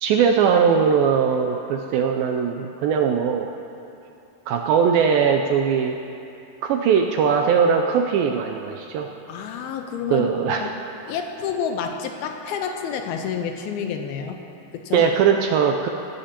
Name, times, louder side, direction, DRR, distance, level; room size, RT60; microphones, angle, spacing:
voice 1, 0.0-3.5 4.5-6.0 6.6-9.1 10.1-10.6 14.9-15.9, right 6 dB, 80° right, 3 dB, 2.1 m, -20 dB
voice 2, 9.3-10.3 10.6-10.7 11.1-14.4 14.7-15.1, left 7 dB, 80° left, 4 dB, 2.6 m, -29 dB
19.0 x 16.5 x 2.9 m, 2.7 s
omnidirectional pair, 4.6 m